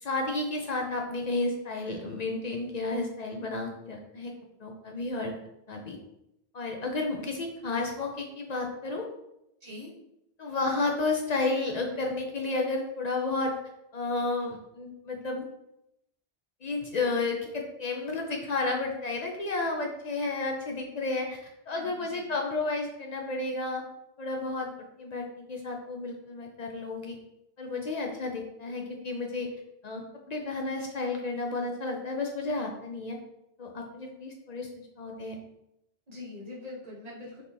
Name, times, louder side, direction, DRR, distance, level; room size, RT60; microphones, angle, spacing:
voice 1, 0.0-4.3 4.6-5.3 5.7-6.0 6.5-9.1 10.4-13.6 13.9-15.4 16.6-23.8 24.2-24.7 25.0-27.2 27.6-29.5 29.8-30.0 30.3-33.2 33.6-35.4, left 3 dB, 50° left, 1 dB, 0.5 m, -32 dB
voice 2, 9.6-9.9 21.7-22.3 36.1-37.4, left 2 dB, 40° right, -5 dB, 1.1 m, -43 dB
4.1 x 2.9 x 3.3 m, 0.84 s
omnidirectional pair, 1.1 m